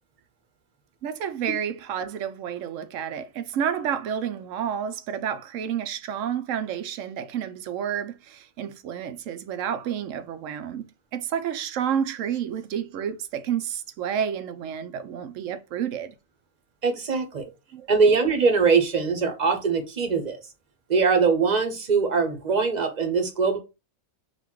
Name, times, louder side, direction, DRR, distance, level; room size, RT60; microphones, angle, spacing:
voice 1, 1.0-10.9 11.1-16.1 17.7-18.0, right 8 dB, 75° right, 1.0 m, -30 dB
voice 2, 16.8-17.4 17.9-20.4 20.9-23.6, right 5 dB, 35° right, 0.9 m, -22 dB
4.0 x 2.5 x 4.5 m
omnidirectional pair, 1.4 m